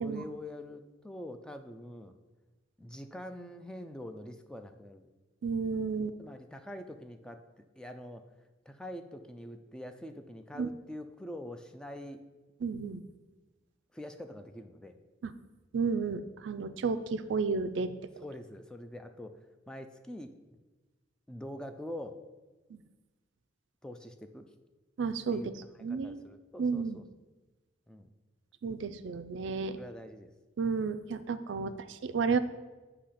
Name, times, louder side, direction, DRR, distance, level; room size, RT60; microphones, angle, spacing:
voice 1, 0.0-2.1 2.8-5.1 6.2-7.4 7.8-8.2 8.7-12.2 13.9-15.0 18.2-20.6 21.3-22.2 23.8-24.5 25.3-27.0 27.9-28.1 29.8-30.3 31.6-31.7, left 1 dB, 5° left, 7 dB, 0.3 m, -45 dB
voice 2, 5.4-6.2 10.6-10.7 12.6-13.0 15.2-15.3 15.7-17.9 22.7-22.8 25.0-25.5 25.8-26.2 26.6-27.0 28.6-29.8 30.6-32.4, right 5 dB, 70° right, 11 dB, 0.4 m, -32 dB
8.3 x 2.8 x 5.6 m, 1.2 s
head